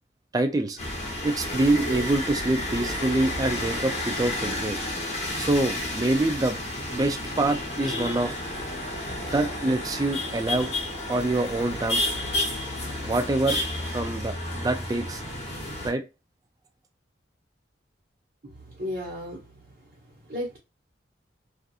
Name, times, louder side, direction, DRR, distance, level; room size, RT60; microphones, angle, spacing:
voice 1, 0.3-0.8 1.2-4.8 5.4-6.6 6.9-8.4 9.3-10.7 11.1-12.1 13.1-15.2 15.8-16.1, right 2 dB, 20° right, 0.3 m, -26 dB
sound 1, 0.8-15.9, left 1 dB, 35° left, 0.9 m, -31 dB
voice 2, 18.4-19.4 20.3-20.6, left 1 dB, 55° right, 1.0 m, -34 dB
2.7 x 2.4 x 2.4 m
head